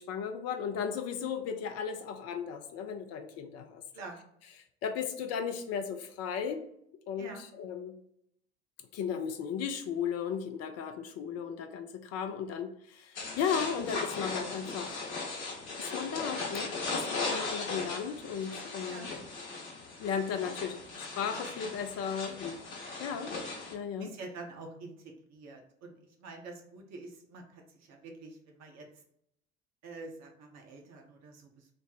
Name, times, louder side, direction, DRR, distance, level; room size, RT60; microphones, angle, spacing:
voice 1, 0.0-3.8 4.8-6.6 7.1-8.0 8.9-15.0 15.8-19.1 20.0-22.6 23.0-23.3 23.7-24.1, left 7 dB, 50° left, 6 dB, 0.5 m, -35 dB
sound 1, 13.1-23.7, left 3 dB, 75° left, 0.9 m, -38 dB
voice 2, 24.0-28.9 29.8-31.7, right 3 dB, 50° right, 2 dB, 0.9 m, -47 dB
3.2 x 2.1 x 4.0 m, 0.73 s
figure-of-eight pair, 55°, 34 cm